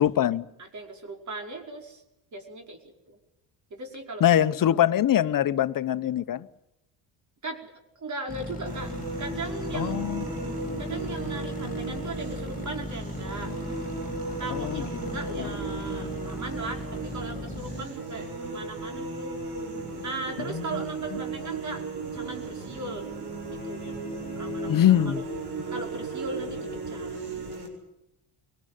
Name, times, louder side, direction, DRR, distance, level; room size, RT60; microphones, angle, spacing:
voice 1, 0.0-0.5 4.2-6.5 9.7-10.3 14.5-14.8 15.4-15.5 20.5-20.8 21.1-21.2 24.6-25.2, left 11 dB, 50° left, 1.1 m, -23 dB
voice 2, 0.6-2.0 2.3-2.8 3.1-3.2 3.7-4.4 7.4-8.9 9.2-10.4 10.8-13.5 14.4-19.4 20.0-21.8 22.1-23.1 23.5-25.2 25.7-27.2, right 2 dB, 40° right, 5.1 m, -38 dB
sound 1, 8.3-17.8, left 2 dB, 20° left, 4.1 m, -37 dB
sound 2, 8.7-27.7, right 3 dB, 65° right, 6.9 m, -35 dB
23.5 x 18.5 x 9.3 m
supercardioid pair, 75°, 43 cm